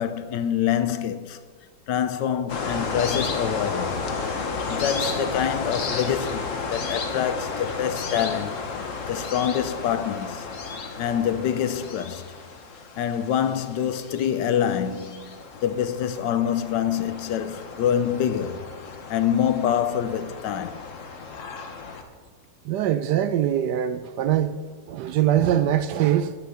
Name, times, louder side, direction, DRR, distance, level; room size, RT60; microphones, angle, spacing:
voice 1, 0.0-1.4 1.9-4.0 4.7-8.6 9.1-10.5 11.0-12.2 13.0-18.7 19.1-20.8, left 9 dB, 70° left, 1.3 m, -26 dB
sound 1, 2.5-22.0, left 4 dB, 45° left, 1.4 m, -33 dB
voice 2, 22.6-24.6 24.9-26.3, right 11 dB, 75° right, 1.1 m, -22 dB
9.6 x 8.5 x 8.5 m
omnidirectional pair, 2.0 m